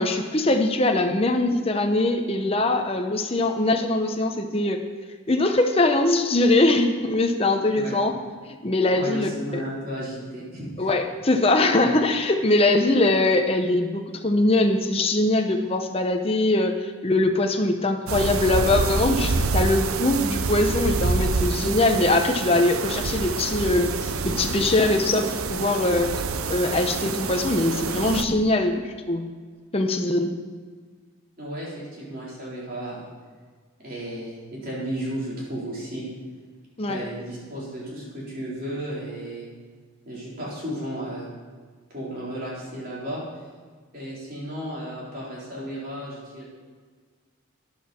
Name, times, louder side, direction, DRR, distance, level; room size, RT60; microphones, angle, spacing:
voice 1, 0.0-4.8 5.3-8.1 8.6-9.6 10.8-26.1 26.5-29.3 29.7-30.4 36.8-37.0, left 2 dB, 25° left, 4 dB, 0.8 m, -22 dB
voice 2, 8.9-10.9 31.4-33.1 33.8-36.1 36.9-39.5 40.1-41.3 41.9-43.2 43.9-46.5, right 1 dB, 40° right, -6 dB, 4.3 m, -34 dB
sound 1, 18.1-28.2, right 4 dB, 85° right, 0.7 m, -27 dB
13.0 x 10.5 x 4.4 m, 1.5 s
head